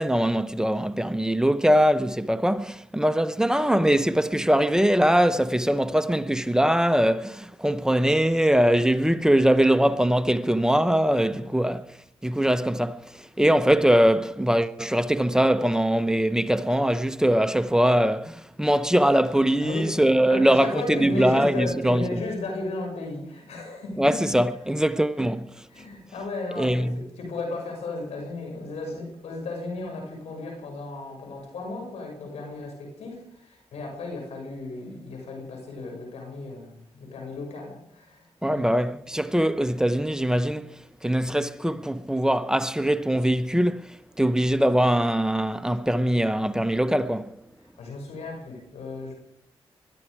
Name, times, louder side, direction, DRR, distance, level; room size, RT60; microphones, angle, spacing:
voice 1, 0.0-11.9 12.2-22.2 24.0-25.7 26.6-27.1 38.4-47.4, equal, 5° right, 0.9 m, -22 dB
voice 2, 19.6-20.0 20.3-24.0 25.7-38.6 47.8-49.1, left 2 dB, 90° left, 6.3 m, -34 dB
21.5 x 13.0 x 4.9 m
cardioid pair, 55°, 11 cm